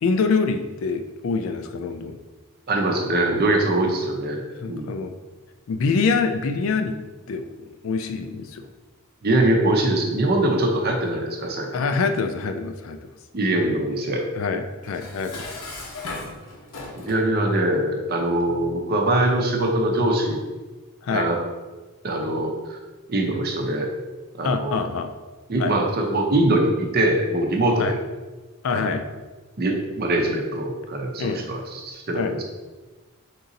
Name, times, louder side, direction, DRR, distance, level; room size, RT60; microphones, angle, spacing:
voice 1, 0.0-2.2 4.5-5.1 5.7-7.0 7.3-8.7 11.7-13.0 14.4-15.4 21.0-21.3 24.4-25.1 25.6-25.7 27.8-27.9 28.6-29.0 31.2-31.4 32.1-32.3, left 4 dB, 65° left, 7 dB, 0.3 m, -25 dB
voice 2, 2.7-4.9 9.2-11.9 13.3-14.2 17.0-20.4 21.1-21.4 22.0-22.8 23.1-23.9 24.4-24.8 25.5-28.0 28.7-29.0 29.6-32.4, right 1 dB, 45° right, 2 dB, 0.6 m, -23 dB
Dishes pots and pans, 14.8-17.3, left 3 dB, 80° left, 0.8 m, -36 dB
3.8 x 2.6 x 3.9 m, 1.3 s
head